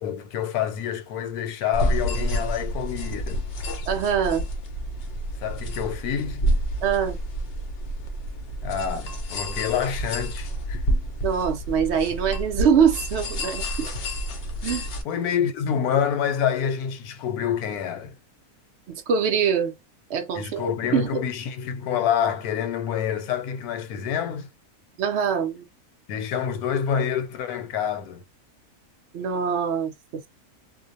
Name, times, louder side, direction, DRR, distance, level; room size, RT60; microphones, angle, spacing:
voice 1, 0.0-3.4 5.4-6.4 8.6-10.8 15.0-18.1 20.3-24.5 26.1-28.2, left 8 dB, 85° left, 1.1 m, -27 dB
sound 1, 1.7-15.0, equal, 60° left, 0.6 m, -29 dB
voice 2, 3.9-4.5 6.8-7.2 11.2-13.9 14.6-14.9 18.9-19.7 20.1-21.3 25.0-25.7 29.1-30.3, right 7 dB, 60° right, 0.7 m, -24 dB
2.5 x 2.1 x 2.6 m
omnidirectional pair, 1.6 m